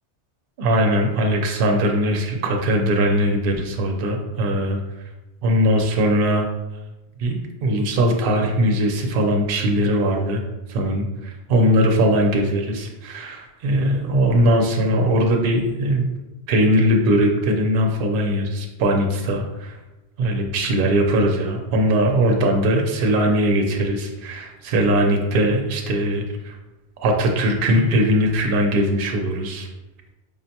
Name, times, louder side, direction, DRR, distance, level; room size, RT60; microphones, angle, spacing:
voice 1, 0.6-4.8 5.4-6.5 7.2-10.4 10.7-16.0 16.5-19.8 20.2-26.6 27.0-29.7, equal, 60° right, 2 dB, 0.7 m, -20 dB
5.0 x 2.1 x 2.7 m, 1.0 s
omnidirectional pair, 1.1 m